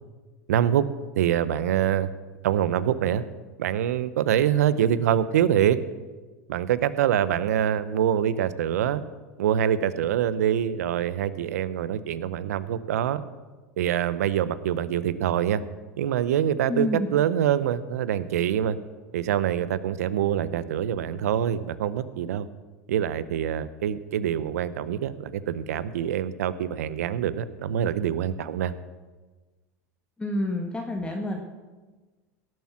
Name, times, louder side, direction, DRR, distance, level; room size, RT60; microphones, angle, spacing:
voice 1, 0.5-0.8 1.2-2.1 2.4-3.2 3.6-5.8 6.5-9.0 9.4-13.2 13.8-15.6 16.0-18.8 19.1-22.5 22.9-28.7, right 10 dB, 75° right, 15 dB, 0.8 m, -25 dB
voice 2, 16.7-17.1 30.2-31.4, left 1 dB, 10° left, 1 dB, 1.5 m, -28 dB
17.5 x 7.6 x 6.0 m, 1.3 s
hypercardioid pair, 95°, 8 cm